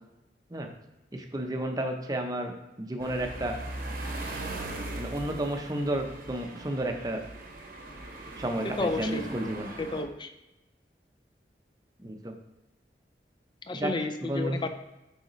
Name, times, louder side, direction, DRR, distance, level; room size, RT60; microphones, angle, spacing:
voice 1, 1.1-3.6 4.9-7.2 8.4-9.7 12.0-12.3 13.7-14.6, right 1 dB, 20° right, 4 dB, 0.6 m, -32 dB
sound 1, 3.0-10.0, right 2 dB, 55° right, 0.9 m, -39 dB
voice 2, 8.8-9.4 9.8-10.3 13.7-14.7, left 2 dB, 25° left, 8 dB, 0.4 m, -31 dB
6.6 x 4.9 x 3.1 m, 0.99 s
head